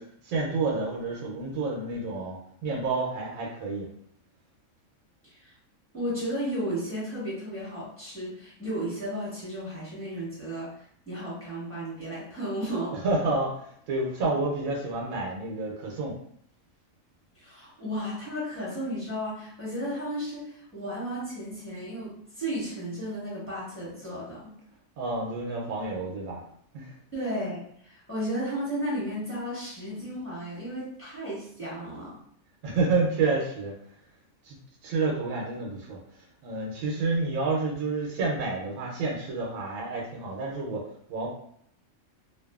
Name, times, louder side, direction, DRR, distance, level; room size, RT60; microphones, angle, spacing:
voice 1, 0.0-3.9 12.9-16.2 25.0-26.4 26.7-26.9 32.6-33.7 34.4-34.6 34.8-40.8 41.1-41.3, right 3 dB, 90° right, -2 dB, 1.1 m, -29 dB
voice 2, 5.2-5.5 5.9-13.0 17.3-24.5 27.1-32.2, equal, 10° left, -9 dB, 1.1 m, -34 dB
2.6 x 2.5 x 2.3 m, 0.66 s
omnidirectional pair, 1.4 m